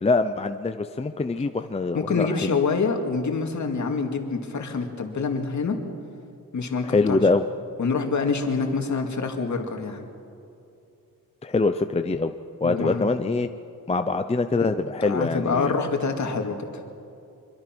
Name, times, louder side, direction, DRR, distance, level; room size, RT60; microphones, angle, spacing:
voice 1, 0.0-2.6 6.8-7.5 11.4-12.3 12.6-13.5 13.9-15.7, left 3 dB, 20° left, 8 dB, 0.6 m, -24 dB
voice 2, 1.9-5.8 6.5-7.2 7.8-10.1 12.6-13.1 14.6-14.7 15.0-16.6, left 4 dB, 55° left, 3 dB, 2.4 m, -26 dB
25.0 x 24.0 x 6.2 m, 2.6 s
wide cardioid pair, 140°, 35 cm